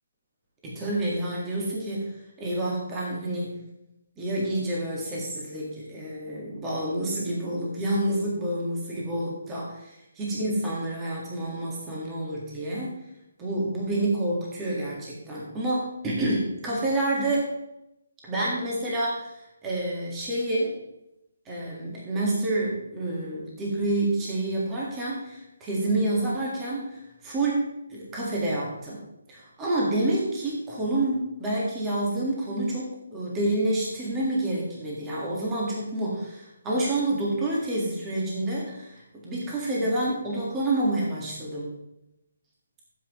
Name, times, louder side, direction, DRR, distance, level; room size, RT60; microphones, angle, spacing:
voice 1, 0.6-3.6 4.2-12.9 13.4-17.5 18.2-20.8 21.5-29.0 29.3-41.7, right 1 dB, 10° right, -5 dB, 1.8 m, -28 dB
14.0 x 7.6 x 3.1 m, 0.88 s
hypercardioid pair, 170°, 0 cm